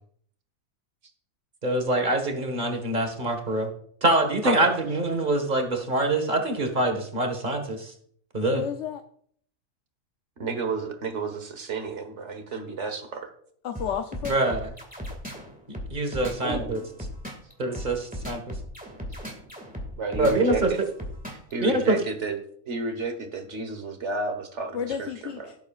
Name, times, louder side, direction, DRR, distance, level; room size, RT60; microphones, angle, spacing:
voice 1, 1.6-3.7 4.0-7.9 8.3-8.6 14.3-14.7 15.9-16.8 17.6-18.4 20.1-20.7 21.6-22.0, right 2 dB, 35° right, 5 dB, 1.7 m, -25 dB
voice 2, 4.4-4.8 10.4-13.3 16.4-16.9 20.0-20.8 21.5-22.4 22.7-25.5, right 3 dB, 55° right, 8 dB, 1.6 m, -31 dB
voice 3, 8.5-9.0 13.6-14.4 24.7-25.6, left 8 dB, 65° left, 7 dB, 0.9 m, -31 dB
sound 1, 13.7-21.5, equal, 5° right, 2.0 m, -36 dB
16.5 x 8.1 x 2.4 m, 0.63 s
omnidirectional pair, 1.4 m